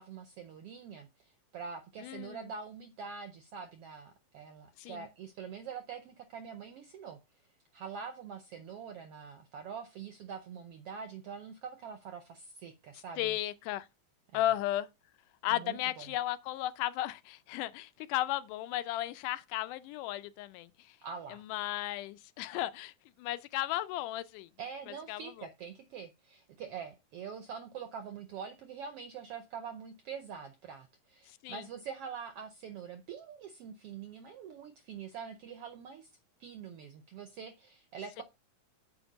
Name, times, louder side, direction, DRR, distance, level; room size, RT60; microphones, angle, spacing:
voice 1, 0.0-7.2 7.7-13.4 14.3-14.4 15.5-16.1 21.0-21.4 24.6-36.1 36.4-38.2, right 6 dB, 80° right, 1.3 m, -45 dB
voice 2, 2.0-2.5 4.8-5.1 13.2-13.9 14.3-14.9 15.4-21.0 21.3-24.5 24.9-25.5 31.3-31.6 38.2-38.3, left 14 dB, 90° left, 2.1 m, -35 dB
6.9 x 5.2 x 5.1 m
omnidirectional pair, 3.6 m